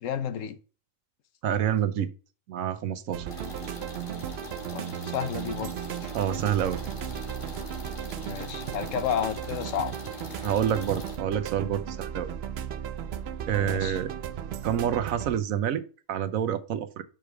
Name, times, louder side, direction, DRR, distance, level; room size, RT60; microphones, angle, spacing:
voice 1, 0.0-0.6 4.7-6.1 8.2-9.9 10.3-10.5 13.5-14.0, left 8 dB, 75° left, 1.1 m, -32 dB
voice 2, 1.4-2.1 2.5-3.3 6.1-6.8 10.4-12.3 13.5-14.1 14.6-17.0, right 9 dB, 85° right, 1.1 m, -28 dB
sound 1, 3.1-15.4, right 9 dB, 60° right, 0.8 m, -36 dB
sound 2, 3.3-11.2, left 1 dB, 40° left, 1.4 m, -42 dB
6.0 x 5.0 x 4.6 m
omnidirectional pair, 1.4 m